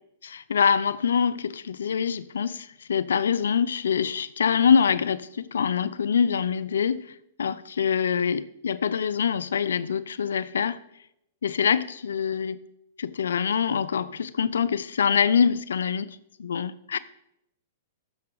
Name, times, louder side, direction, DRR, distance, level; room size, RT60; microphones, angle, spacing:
voice 1, 0.2-10.8 11.4-12.6 13.0-17.0, left 7 dB, 85° left, 0.5 m, -25 dB
14.0 x 6.8 x 3.9 m
hypercardioid pair, 125°, 0 cm